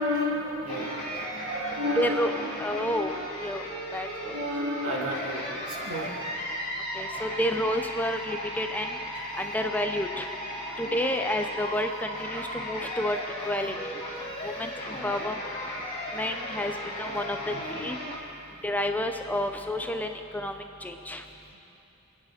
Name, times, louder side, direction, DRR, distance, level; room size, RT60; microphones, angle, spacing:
voice 1, 0.0-2.8 4.0-6.2 10.6-11.0 17.5-17.6, left 1 dB, 85° right, -3 dB, 2.7 m, -32 dB
sound 1, 0.7-18.2, equal, 25° left, 2.7 m, -36 dB
voice 2, 2.0-2.3 2.6-3.1 3.4-3.6 3.9-4.5 6.9-9.0 9.4-10.3 10.8-13.2 13.4-13.7 14.4-15.4 16.1-18.0 18.6-21.2, left 1 dB, 5° left, 5 dB, 0.5 m, -30 dB
27.0 x 9.8 x 5.0 m, 2.9 s
head